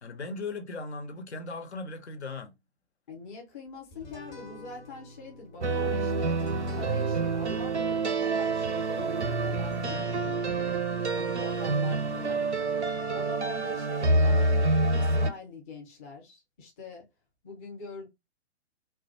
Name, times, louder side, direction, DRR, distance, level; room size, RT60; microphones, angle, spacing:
voice 1, 0.0-2.5, left 3 dB, 80° left, 0.7 m, -38 dB
voice 2, 3.1-6.4 6.7-10.8 11.2-12.8 13.1-17.1 17.4-18.1, left 3 dB, 15° left, 0.4 m, -44 dB
sound 1, 3.9-14.6, left 2 dB, 40° left, 1.2 m, -51 dB
sound 2, 5.6-15.3, right 2 dB, 90° right, 0.5 m, -27 dB
2.2 x 2.1 x 2.6 m
figure-of-eight pair, 120°, 33 cm